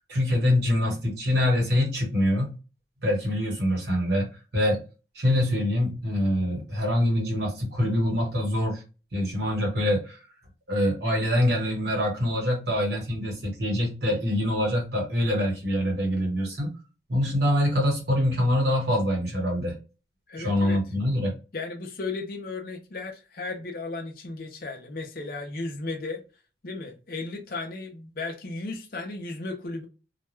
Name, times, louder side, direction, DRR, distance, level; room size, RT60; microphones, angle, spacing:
voice 1, 0.0-2.6 3.0-4.8 5.1-8.8 9.1-10.2 10.7-16.7 17.1-19.7 20.4-21.3, left 1 dB, 60° right, 1.1 m, -25 dB
voice 2, 20.3-20.8 21.5-26.2 26.6-29.9, left 3 dB, 50° left, 0.5 m, -35 dB
2.2 x 2.1 x 3.1 m
head